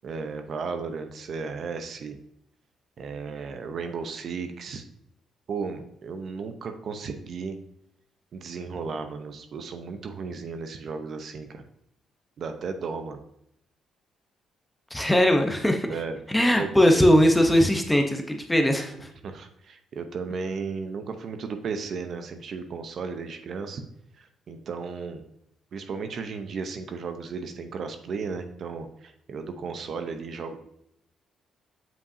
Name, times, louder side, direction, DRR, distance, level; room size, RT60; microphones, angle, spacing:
voice 1, 0.0-2.2 3.0-4.8 5.5-7.6 8.3-11.6 12.4-13.2 15.9-16.2 16.5-17.0 19.2-23.8 24.2-25.2 25.7-30.6, right 5 dB, 60° right, 7 dB, 0.8 m, -34 dB
voice 2, 14.9-15.9 16.3-19.1, equal, 10° left, 4 dB, 0.8 m, -20 dB
7.5 x 5.5 x 2.7 m, 0.76 s
cardioid pair, 90°, 0 cm